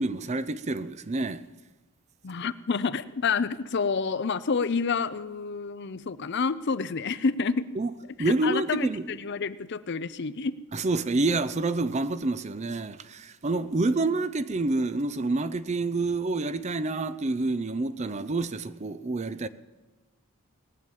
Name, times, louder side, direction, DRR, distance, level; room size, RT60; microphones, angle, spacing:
voice 1, 0.0-1.4 7.8-7.9 8.2-9.0 10.7-19.5, right 2 dB, 30° right, 0.5 m, -28 dB
voice 2, 2.2-7.7 8.2-10.5, left 5 dB, 50° left, 0.5 m, -28 dB
19.5 x 7.1 x 9.2 m
head